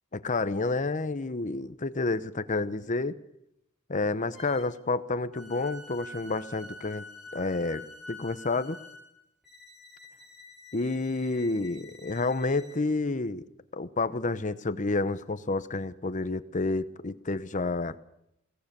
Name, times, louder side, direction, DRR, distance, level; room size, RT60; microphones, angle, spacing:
voice 1, 0.1-3.2 3.9-7.0 7.3-8.8 10.7-13.4 13.7-17.9, left 3 dB, 35° left, 13 dB, 0.9 m, -29 dB
sound 1, 4.3-4.8 5.3-12.9, left 2 dB, ahead, 6.4 m, -47 dB
22.0 x 18.0 x 6.8 m, 0.78 s
head